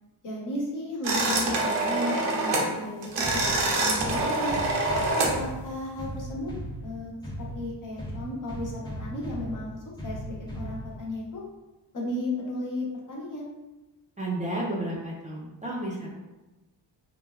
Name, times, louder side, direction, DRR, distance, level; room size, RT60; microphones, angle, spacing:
voice 1, 0.2-4.6 5.4-6.5 6.8-7.1 7.4-11.4 11.9-13.5, left 1 dB, 45° left, -4 dB, 0.9 m, -34 dB
sound 1, 1.0-2.7 3.0-5.4, right 2 dB, 80° right, 0.7 m, -25 dB
sound 2, 3.2-11.2, equal, 10° left, 0.9 m, -38 dB
voice 2, 14.2-16.2, right 1 dB, 15° right, -5 dB, 0.5 m, -32 dB
3.2 x 2.2 x 2.3 m, 1.1 s
cardioid pair, 65°, 43 cm